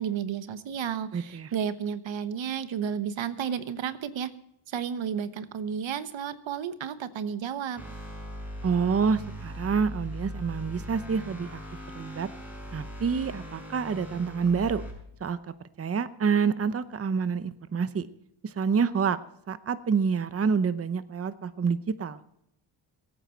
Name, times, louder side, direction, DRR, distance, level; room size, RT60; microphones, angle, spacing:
voice 1, 0.0-4.3 4.7-7.8, right 8 dB, 75° right, 12 dB, 1.2 m, -32 dB
voice 2, 1.1-1.5 8.6-11.6 12.0-12.3 12.7-14.8 15.2-15.4 15.8-18.1 18.4-19.2 19.5-22.2, right 6 dB, 30° right, 13 dB, 0.8 m, -27 dB
sound 1, 7.8-14.9, equal, 5° right, 6.2 m, -40 dB
22.0 x 9.3 x 4.5 m, 0.76 s
cardioid pair, 85°, 47 cm